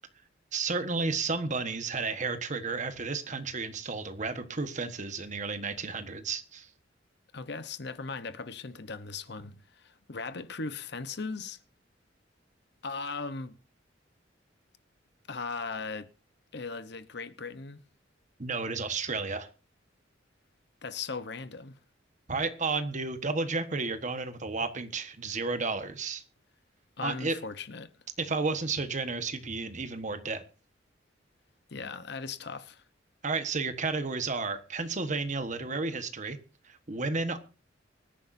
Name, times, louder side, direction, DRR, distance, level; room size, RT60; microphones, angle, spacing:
voice 1, 0.5-6.7 18.4-19.5 22.3-26.2 27.0-27.4 28.2-30.4 33.2-36.4 36.6-37.4, right 4 dB, 40° right, 1.3 m, -32 dB
voice 2, 7.3-11.6 12.8-13.6 15.3-16.1 16.5-17.8 20.8-21.8 27.0-27.9 31.7-32.8, left 4 dB, 60° left, 1.0 m, -38 dB
24.0 x 10.0 x 2.7 m
head